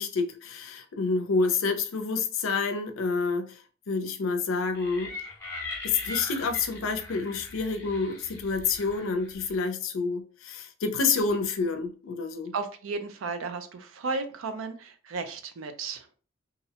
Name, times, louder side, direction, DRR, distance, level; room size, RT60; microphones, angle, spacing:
voice 1, 0.0-5.1 5.8-12.5, left 4 dB, 80° left, 0.4 m, -28 dB
sound 1, 4.7-9.6, left 3 dB, 10° left, 0.5 m, -40 dB
voice 2, 12.5-16.1, right 4 dB, 85° right, 0.4 m, -34 dB
2.5 x 2.0 x 2.8 m
head